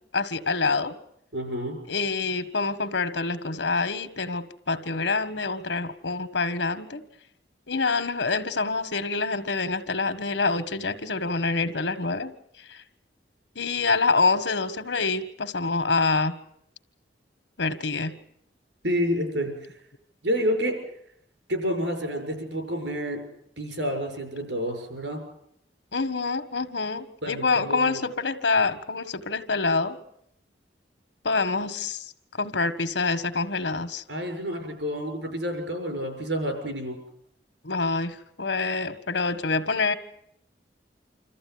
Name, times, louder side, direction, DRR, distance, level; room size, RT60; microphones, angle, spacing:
voice 1, 0.1-1.0 1.9-7.0 7.7-12.3 12.7-12.8 13.5-16.4 17.6-18.1 25.9-30.0 31.2-32.0 32.4-34.0 37.6-39.9, left 4 dB, 85° left, 11 dB, 1.7 m, -26 dB
voice 2, 1.3-1.8 18.8-19.5 20.2-20.7 21.5-23.2 23.6-25.2 27.2-28.0 34.1-36.9, equal, 80° right, 4 dB, 6.9 m, -29 dB
26.5 x 14.5 x 9.7 m, 0.74 s
head